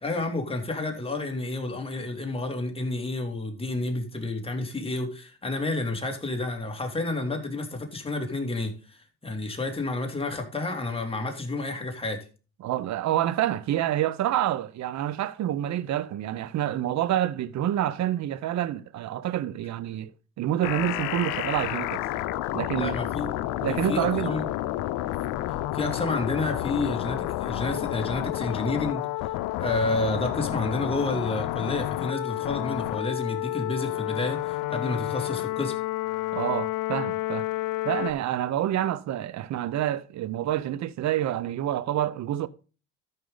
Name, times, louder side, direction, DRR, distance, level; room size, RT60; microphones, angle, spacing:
voice 1, 0.0-12.2 22.7-23.3 23.7-24.4 25.5-29.1 29.6-35.8, left 2 dB, 20° left, 2.8 m, -30 dB
voice 2, 12.6-20.1 20.4-22.0 22.5-23.0 23.6-24.4 36.3-37.5 37.8-42.5, right 12 dB, 60° right, 0.8 m, -27 dB
sound 1, 20.6-38.1, left 16 dB, 85° left, 0.7 m, -30 dB
13.0 x 5.8 x 3.9 m
cardioid pair, 90°, 31 cm